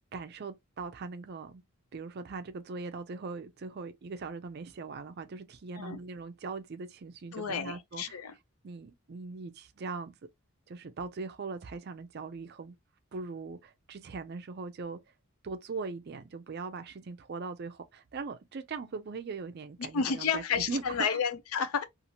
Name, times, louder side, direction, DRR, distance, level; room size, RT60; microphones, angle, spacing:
voice 1, 0.1-1.6 1.9-8.2 8.6-10.1 10.7-12.8 13.1-15.0 15.4-21.1, right 4 dB, 45° right, 0.4 m, -40 dB
voice 2, 7.3-8.3 19.9-21.8, left 6 dB, 75° left, 0.5 m, -31 dB
2.7 x 2.5 x 2.8 m
head